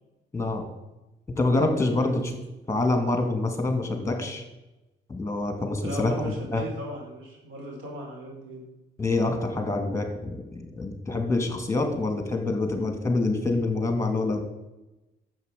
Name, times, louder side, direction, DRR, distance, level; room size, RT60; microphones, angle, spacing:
voice 1, 0.3-0.6 1.4-2.3 2.7-4.4 5.1-6.6 9.0-14.4, left 2 dB, 15° left, 4 dB, 3.0 m, -26 dB
voice 2, 5.8-8.6, right 1 dB, 80° right, 0 dB, 4.9 m, -37 dB
11.0 x 7.8 x 8.5 m, 1.0 s
cardioid pair, 90°, 20 cm